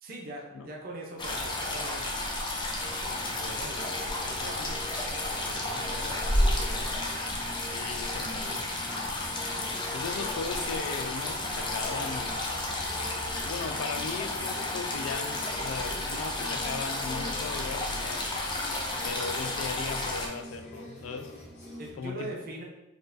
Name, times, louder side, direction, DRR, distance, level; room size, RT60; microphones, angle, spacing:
voice 1, 0.0-2.1 3.1-4.9 5.2-6.9 10.3-10.4 21.8-22.6, right 1 dB, 45° right, 0.5 m, -42 dB
sound 1, 1.2-20.3, left 2 dB, 25° left, 0.5 m, -32 dB
sound 2, 2.8-21.9, equal, 40° left, 0.8 m, -45 dB
voice 2, 7.6-8.7 9.9-12.6 13.4-18.3 19.0-21.3 22.0-22.4, left 5 dB, 90° left, 0.3 m, -37 dB
4.1 x 2.4 x 2.5 m
head